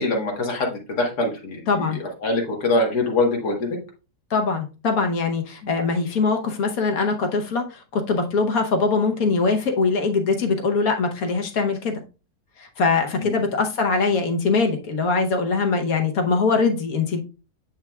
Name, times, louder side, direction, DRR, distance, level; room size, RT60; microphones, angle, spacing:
voice 1, 0.0-3.7 5.6-5.7 13.2-13.3, left 2 dB, 90° left, 1 dB, 2.1 m, -24 dB
voice 2, 1.7-2.0 4.3-12.0 12.6-17.2, left 4 dB, 65° left, 4 dB, 1.4 m, -22 dB
7.2 x 6.6 x 2.3 m, 0.32 s
omnidirectional pair, 1.7 m